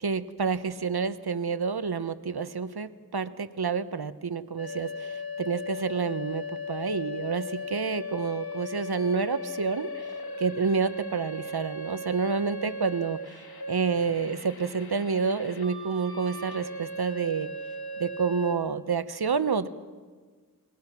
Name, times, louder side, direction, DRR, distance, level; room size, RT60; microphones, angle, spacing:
voice 1, 0.0-10.1 10.4-13.2 13.7-17.5 18.0-19.7, right 5 dB, 85° right, 13 dB, 1.0 m, -29 dB
sound 1, 4.6-18.6, left 2 dB, 90° left, 1.6 m, -38 dB
28.5 x 21.0 x 6.0 m, 1.5 s
wide cardioid pair, 45°, 37 cm